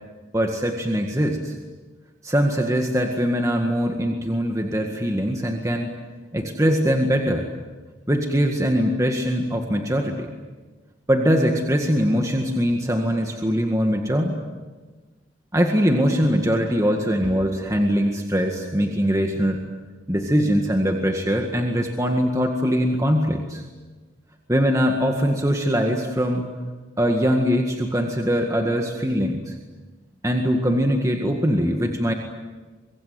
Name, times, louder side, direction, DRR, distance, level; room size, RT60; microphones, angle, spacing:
voice 1, 0.3-1.6 2.2-5.9 6.3-7.5 8.1-10.3 11.1-14.4 15.5-19.6 20.1-23.6 24.5-26.5 27.0-29.6 30.2-32.1, equal, 15° right, 3 dB, 1.9 m, -22 dB
25.0 x 23.5 x 9.5 m, 1.3 s
head